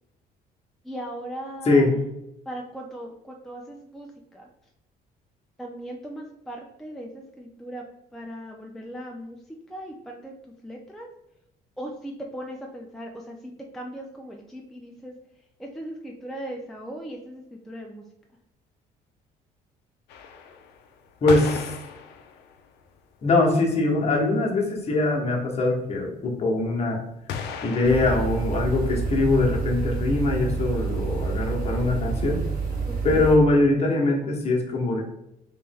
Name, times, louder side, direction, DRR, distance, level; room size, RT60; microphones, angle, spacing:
voice 1, 0.8-2.0 2.5-4.5 5.6-7.8 8.1-9.4 9.7-10.3 10.6-11.1 11.8-15.1 15.6-18.0 33.1-33.3, right 1 dB, ahead, 0 dB, 0.4 m, -38 dB
sound 1, 20.1-22.9 23.5-23.6 23.8-23.9 24.1-24.2 24.5-24.9 27.3-29.2, left 6 dB, 80° left, 0.5 m, -36 dB
voice 2, 21.2-21.7 23.2-27.0 27.6-32.4 33.0-35.0, left 2 dB, 40° left, 0 dB, 1.0 m, -22 dB
sound 2, 27.8-33.4, right 5 dB, 60° right, 1.3 m, -28 dB
3.3 x 3.0 x 3.4 m, 0.83 s
cardioid pair, 110°, 17 cm